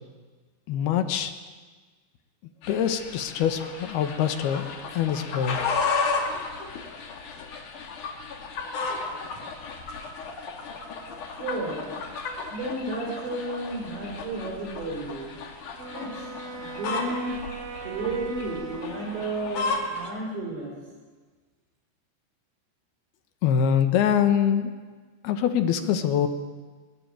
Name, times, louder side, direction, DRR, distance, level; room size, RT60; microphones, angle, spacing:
voice 1, 0.7-1.3 2.7-4.7 4.9-5.6 23.4-24.7 25.2-26.3, left 8 dB, 65° left, 8 dB, 2.8 m, -24 dB
sound 1, 2.6-20.1, left 4 dB, 45° left, 3.2 m, -34 dB
voice 2, 11.3-11.9 12.5-15.4 15.9-16.3 16.6-17.3 17.8-20.7, right 2 dB, 60° right, -1 dB, 7.3 m, -32 dB
Wind instrument woodwind instrument, 15.8-19.9, right 4 dB, 80° right, 1.4 m, -40 dB
22.0 x 20.0 x 9.1 m, 1.4 s
omnidirectional pair, 5.8 m